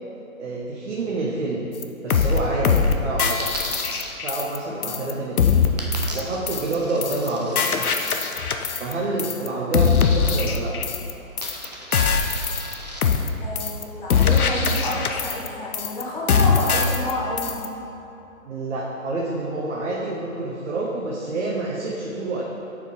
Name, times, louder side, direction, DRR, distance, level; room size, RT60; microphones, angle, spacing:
voice 1, 0.4-1.6 2.0-3.5 4.2-5.6 6.1-7.7 8.8-10.7 18.4-22.4, right 2 dB, 55° right, -4 dB, 0.9 m, -28 dB
sound 1, 1.8-1.9 2.1-2.4 2.6-2.9 3.2-4.6 4.8-5.1 5.4-5.7 5.9-6.2 6.5-6.7 7.0-7.3 7.6-8.9 9.2-9.5 9.7-11.1 11.4-11.6 11.9-12.7 13.0-13.3 13.6-13.8 14.1-15.5 15.7-16.0 16.3-17.1 17.4-17.7, left 6 dB, 85° left, 0.6 m, -21 dB
Coin (dropping), 3.4-4.1 5.8-8.2 10.0-10.7 10.9-13.0, right 1 dB, 30° right, 0.4 m, -37 dB
voice 2, 4.6-5.0 13.4-17.7, left 1 dB, 35° left, -4 dB, 1.2 m, -30 dB
6.7 x 4.5 x 3.7 m, 2.8 s
figure-of-eight pair, 140°, 43 cm